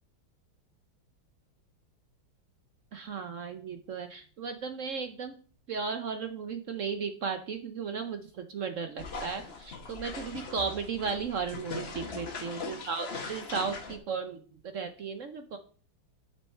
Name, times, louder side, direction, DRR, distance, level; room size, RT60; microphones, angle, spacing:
voice 1, 2.9-5.4 5.7-15.6, right 5 dB, 65° right, 7 dB, 0.8 m, -35 dB
sound 1, 9.0-14.0, left 3 dB, 35° left, 1.2 m, -40 dB
8.7 x 6.4 x 4.3 m, 0.43 s
omnidirectional pair, 2.2 m